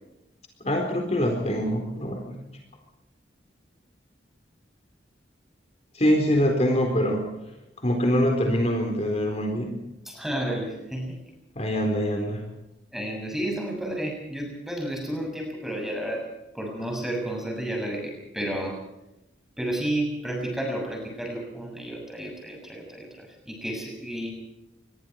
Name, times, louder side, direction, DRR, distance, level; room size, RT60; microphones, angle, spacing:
voice 1, 0.6-2.4 5.9-7.3 7.8-9.8 11.6-12.4, equal, 35° left, 3 dB, 4.2 m, -24 dB
voice 2, 10.1-11.2 12.9-16.3 16.5-18.8 19.6-24.3, right 1 dB, ahead, 2 dB, 6.9 m, -31 dB
26.5 x 21.5 x 4.7 m, 0.94 s
head